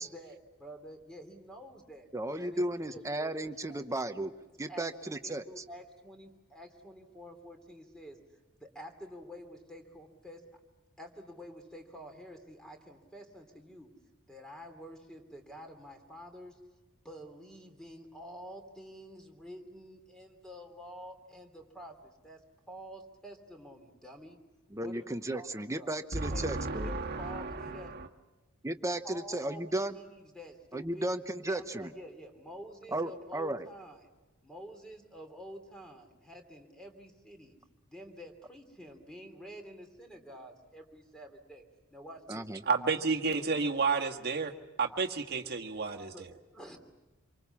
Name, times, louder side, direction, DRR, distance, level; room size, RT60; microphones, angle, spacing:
voice 1, 0.0-3.8 4.7-8.2 8.6-10.5 11.0-13.9 14.3-16.6 17.0-22.4 22.7-24.4 24.7-25.5 25.8-25.9 26.3-26.5 26.8-28.0 29.0-31.1 31.4-34.1 34.4-37.6 37.8-41.6 41.9-42.5 42.9-43.0 43.3-43.8 46.1-46.2 46.5-46.8, equal, 5° left, 4 dB, 3.0 m, -49 dB
voice 2, 2.1-4.3 4.6-5.6 24.7-26.9 28.6-30.0 30.7-31.9 32.9-33.7 42.3-42.6, right 1 dB, 15° right, 9 dB, 0.9 m, -35 dB
voice 3, 26.1-28.1 42.7-44.5 44.8-46.3, right 4 dB, 50° right, 2 dB, 1.6 m, -31 dB
27.0 x 24.0 x 7.2 m, 1.1 s
head